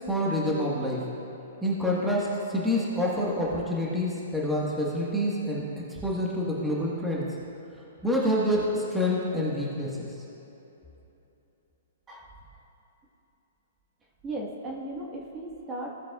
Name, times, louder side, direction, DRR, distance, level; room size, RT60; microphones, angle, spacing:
voice 1, 0.1-1.0 1.6-5.6 5.9-7.2 8.0-10.1, left 1 dB, 5° right, -6 dB, 1.5 m, -27 dB
voice 2, 14.2-15.9, right 1 dB, 20° right, -3 dB, 1.6 m, -36 dB
16.5 x 7.3 x 2.4 m, 3.0 s
hypercardioid pair, 130°, 0 cm